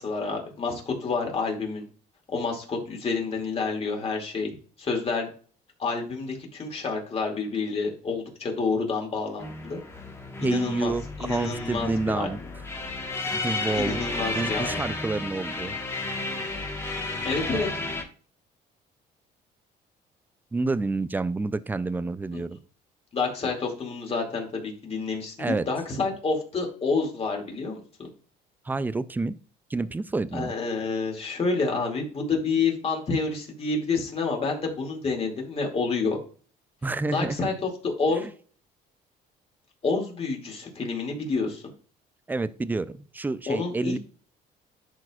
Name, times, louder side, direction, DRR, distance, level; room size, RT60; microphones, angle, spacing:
voice 1, 0.0-1.8 2.3-4.5 4.8-5.3 5.8-9.8 10.4-10.9 11.2-12.3 13.8-14.8 17.2-17.7 22.3-22.4 23.1-28.1 30.3-36.2 37.1-38.2 39.8-41.6 43.5-44.0, left 4 dB, 35° left, 1 dB, 2.4 m, -28 dB
sound 1, 9.4-18.0, left 2 dB, 15° left, 1.3 m, -32 dB
voice 2, 10.4-12.4 13.3-15.7 17.4-17.6 20.5-22.6 25.4-25.7 28.7-29.4 29.7-30.5 36.8-37.4 42.3-44.0, right 3 dB, 10° right, 15 dB, 0.4 m, -29 dB
10.5 x 4.6 x 2.4 m, 0.41 s
cardioid pair, 110°, 17 cm